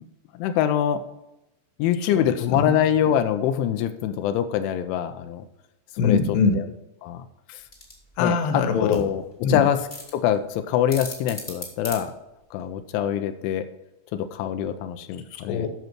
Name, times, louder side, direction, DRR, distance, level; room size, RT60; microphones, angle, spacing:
voice 1, 0.4-1.0 1.8-5.4 6.0-6.2 7.0-7.2 7.5-7.6 8.2-8.4 8.7-9.2 9.5-9.8 10.1-12.1 12.5-13.6 14.1-15.7, left 10 dB, 90° left, 8 dB, 3.2 m, -24 dB
voice 2, 2.0-2.8 6.0-6.6 8.2-9.1 9.4-9.6 15.3-15.7, left 4 dB, 70° left, 6 dB, 3.0 m, -23 dB
sound 1, 7.6-12.7, left 2 dB, 30° left, 1.1 m, -40 dB
10.5 x 6.5 x 4.5 m, 0.94 s
omnidirectional pair, 5.3 m